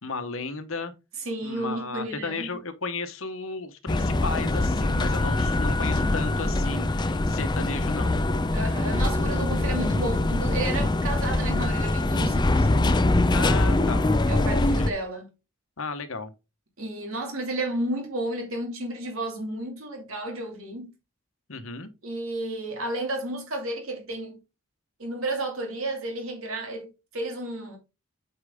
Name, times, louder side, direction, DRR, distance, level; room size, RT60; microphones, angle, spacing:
voice 1, 0.0-0.9 1.4-8.2 13.3-14.0 14.8-14.9 15.8-16.3 21.5-21.9, left 3 dB, 65° left, 1.0 m, -34 dB
voice 2, 1.2-2.6 8.5-12.9 14.3-15.3 16.8-20.9 22.0-24.4 25.0-27.8, right 1 dB, 70° right, 2.6 m, -32 dB
sound 1, 3.9-14.9, left 2 dB, 20° left, 0.5 m, -23 dB
8.3 x 4.8 x 3.6 m
head